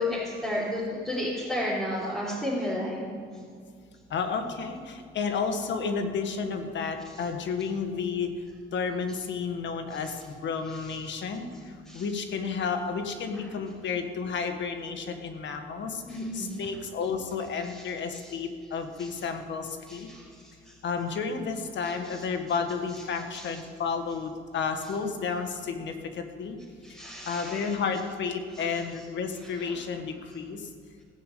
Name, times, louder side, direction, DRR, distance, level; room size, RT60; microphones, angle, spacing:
voice 1, 0.0-3.1 11.9-12.0 13.4-13.5 16.1-16.6 17.6-17.8 18.2-18.3 19.0-19.1 19.9-20.7 22.0-22.2 23.3-23.5 26.8-27.7 29.6-29.7, left 1 dB, ahead, -10 dB, 4.3 m, -32 dB
voice 2, 4.1-8.3 8.7-11.5 11.9-16.0 16.3-20.1 20.8-26.6 27.3-30.6, left 5 dB, 65° left, 6 dB, 1.7 m, -31 dB
16.5 x 6.9 x 8.5 m, 2.2 s
cardioid pair, 90°, 20 cm